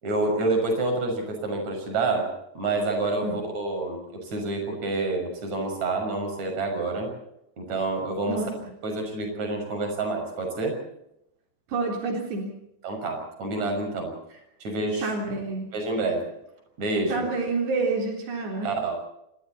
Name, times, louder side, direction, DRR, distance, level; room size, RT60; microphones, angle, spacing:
voice 1, 0.0-7.1 7.6-8.4 8.8-10.8 12.8-15.1 15.7-16.3 16.8-17.3 18.6-19.0, right 2 dB, 40° right, 4 dB, 7.4 m, -28 dB
voice 2, 11.7-12.5 15.0-15.7 17.1-18.7, right 3 dB, 75° right, 1 dB, 5.9 m, -28 dB
27.5 x 24.5 x 4.3 m, 0.79 s
omnidirectional pair, 4.9 m